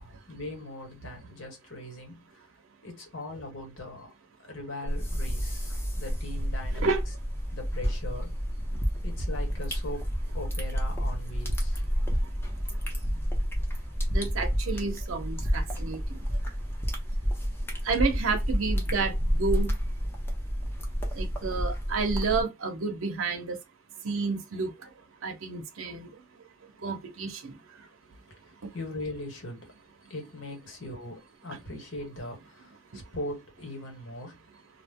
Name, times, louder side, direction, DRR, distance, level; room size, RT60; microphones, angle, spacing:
voice 1, 0.0-2.2 2.8-4.1 4.5-7.0 7.5-8.3 9.0-10.1 10.3-11.8 28.3-29.8 30.1-34.4, left 1 dB, 65° left, 1.3 m, -40 dB
sound 1, 4.9-22.4, equal, 10° left, 0.7 m, -30 dB
voice 2, 14.1-16.2 17.8-19.7 21.1-23.6 24.0-24.7 25.2-26.1 26.8-27.6 28.6-28.7 31.5-31.6, right 4 dB, 85° right, 0.7 m, -30 dB
2.4 x 2.1 x 3.5 m
head